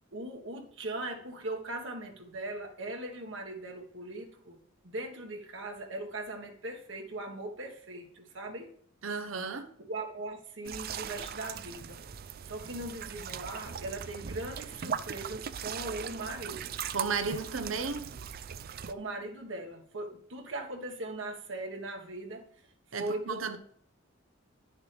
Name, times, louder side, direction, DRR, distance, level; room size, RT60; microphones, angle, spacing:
voice 1, 0.1-4.6 4.8-8.7 9.9-12.0 12.4-16.8 18.8-22.4 23.0-23.6, right 2 dB, 65° right, 1.5 m, -39 dB
voice 2, 9.0-9.7 16.9-18.1 22.9-23.6, right 4 dB, 85° right, 0.9 m, -34 dB
sound 1, 10.6-18.9, right 7 dB, 50° right, 0.4 m, -39 dB
9.9 x 6.6 x 3.4 m
head